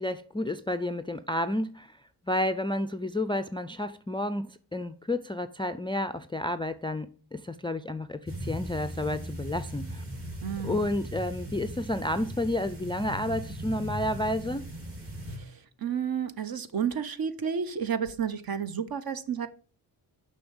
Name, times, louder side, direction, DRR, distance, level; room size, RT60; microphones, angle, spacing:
voice 1, 0.0-2.0 2.3-10.0 10.6-14.7, left 1 dB, 15° left, 0.3 m, -31 dB
sound 1, 8.3-15.4, right 1 dB, 35° right, 1.9 m, -38 dB
voice 2, 10.4-10.9 15.3-19.5, right 7 dB, 55° right, 1.0 m, -31 dB
7.0 x 5.7 x 7.0 m
wide cardioid pair, 125°, 42 cm